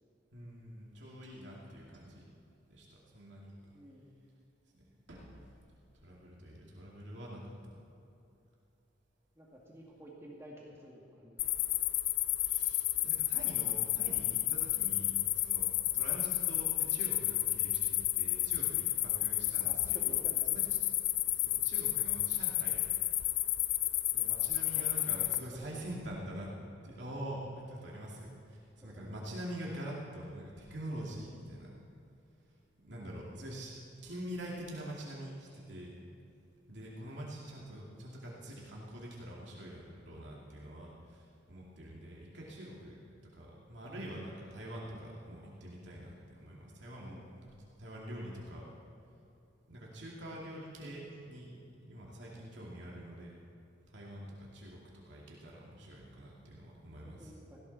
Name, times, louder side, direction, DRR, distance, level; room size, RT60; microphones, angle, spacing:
voice 1, 0.3-2.2 2.7-3.6 5.1-5.5 5.9-7.8 12.4-20.2 20.5-20.8 21.3-22.8 24.1-26.5 26.8-31.7 32.8-33.7 34.0-36.0 36.7-43.0 43.4-48.6 49.7-53.3 53.9-57.3, right 1 dB, 70° right, -4 dB, 2.5 m, -45 dB
voice 2, 3.7-4.1 9.4-11.4 19.6-20.4 21.2-21.3 24.7-24.9 25.2-25.8 28.8-29.1 47.1-47.3 50.8-51.0 52.4-52.5 57.2-57.6, equal, 15° right, -4 dB, 2.3 m, -52 dB
sound 1, 11.4-25.4, left 15 dB, 80° left, 0.5 m, -31 dB
18.0 x 16.5 x 4.2 m, 2.7 s
head